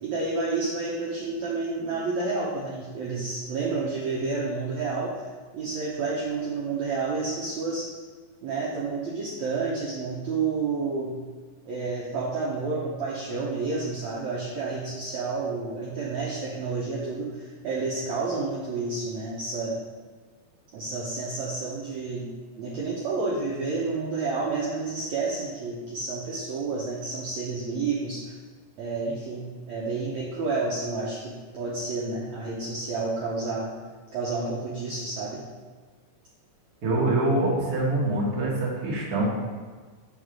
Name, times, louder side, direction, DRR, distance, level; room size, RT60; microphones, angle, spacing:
voice 1, 0.0-5.1 5.5-7.9 8.4-11.2 11.7-19.8 20.7-22.3 22.6-28.2 28.8-33.7 34.1-35.4, right 3 dB, 75° right, -5 dB, 1.7 m, -30 dB
voice 2, 36.8-39.3, right 2 dB, 45° right, -5 dB, 1.2 m, -24 dB
5.1 x 4.6 x 6.1 m, 1.4 s
omnidirectional pair, 4.2 m